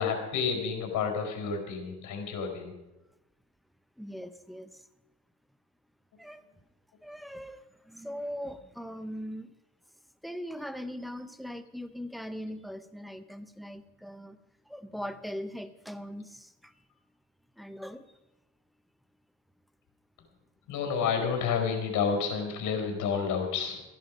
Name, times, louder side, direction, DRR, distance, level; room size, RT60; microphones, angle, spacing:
voice 1, 0.0-2.7 20.7-23.8, left 6 dB, 65° left, 3 dB, 4.6 m, -30 dB
voice 2, 4.0-4.7 6.2-6.4 7.0-9.5 10.2-14.4 14.7-16.7 17.6-18.0, equal, ahead, 12 dB, 0.8 m, -40 dB
15.0 x 11.0 x 5.3 m, 1.0 s
cardioid pair, 125°, 32 cm